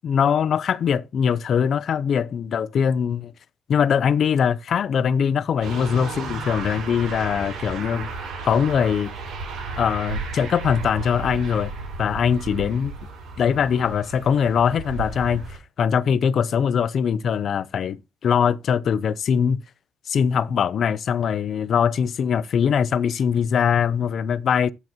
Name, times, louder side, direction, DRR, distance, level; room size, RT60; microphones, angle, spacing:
voice 1, 0.0-3.3 3.7-8.1 8.4-9.1 9.8-11.7 12.0-12.9 13.4-19.6 20.1-24.7, left 7 dB, 60° left, 0.6 m, -22 dB
sound 1, 5.6-15.6, right 3 dB, 85° right, 4.8 m, -33 dB
11.5 x 7.7 x 3.0 m
cardioid pair, 90°, 0 cm